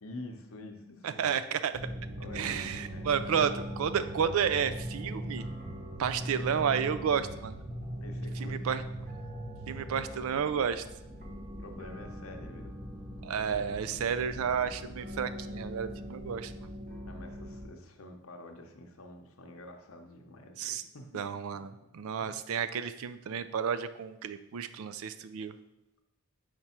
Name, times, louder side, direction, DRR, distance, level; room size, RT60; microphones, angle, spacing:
voice 1, 0.0-1.4 2.2-3.4 8.0-8.7 11.6-12.8 17.0-21.3 22.1-22.2, left 2 dB, 75° left, 4 dB, 0.8 m, -47 dB
voice 2, 1.0-1.8 2.3-5.5 6.0-7.6 8.4-8.8 9.7-10.8 13.2-16.7 20.6-20.8 21.1-25.5, right 7 dB, 75° right, 12 dB, 0.4 m, -31 dB
sound 1, 1.7-17.7, equal, 40° right, 0.8 m, -40 dB
5.0 x 4.6 x 4.3 m, 0.91 s
head